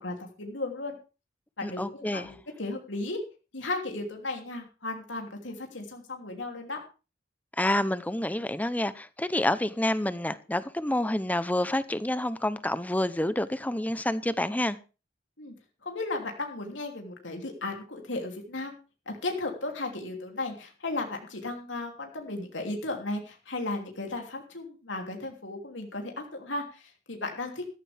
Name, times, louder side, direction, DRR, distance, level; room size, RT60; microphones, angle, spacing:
voice 1, 0.0-1.0 1.6-3.2 3.5-6.8 15.4-15.5 15.8-18.8 19.1-27.7, left 2 dB, 85° left, 3.1 m, -35 dB
voice 2, 1.6-2.3 7.6-14.8, left 1 dB, 10° left, 0.8 m, -28 dB
14.0 x 14.0 x 3.5 m
head